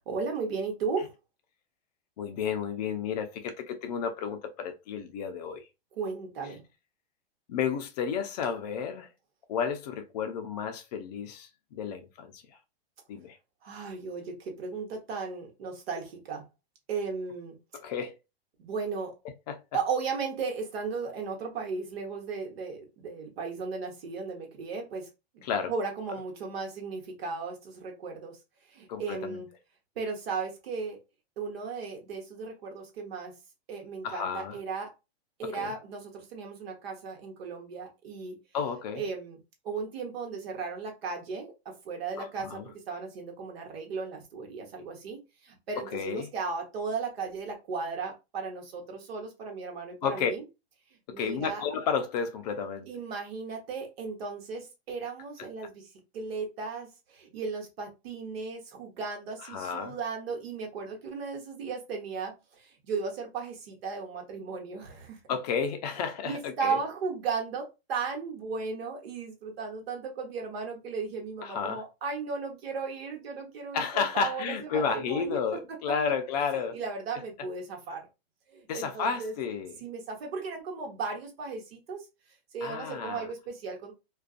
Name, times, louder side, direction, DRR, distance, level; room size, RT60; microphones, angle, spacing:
voice 1, 0.1-1.1 6.0-6.6 13.6-16.4 16.9-17.6 18.6-19.1 19.7-25.1 25.3-25.4 25.7-28.4 28.7-29.5 30.0-31.0 31.4-33.3 33.7-34.9 35.4-38.4 39.0-39.4 39.6-50.4 51.1-51.6 52.9-55.9 56.1-65.2 66.2-75.4 76.7-78.1 78.5-79.3 79.8-82.0 82.5-83.9, right 5 dB, 70° right, 1.1 m, -36 dB
voice 2, 2.2-5.6 7.5-9.1 9.5-12.4 13.1-13.4 17.7-18.1 19.5-19.6 25.4-25.7 28.9-29.4 34.0-34.6 35.5-35.7 38.5-39.0 42.2-42.7 45.9-46.3 50.0-50.3 51.2-52.9 59.5-60.0 65.3-66.8 71.4-71.8 73.7-76.8 78.7-79.8 82.6-83.3, left 6 dB, 40° left, 0.4 m, -32 dB
2.4 x 2.3 x 2.4 m
hypercardioid pair, 145°, 32 cm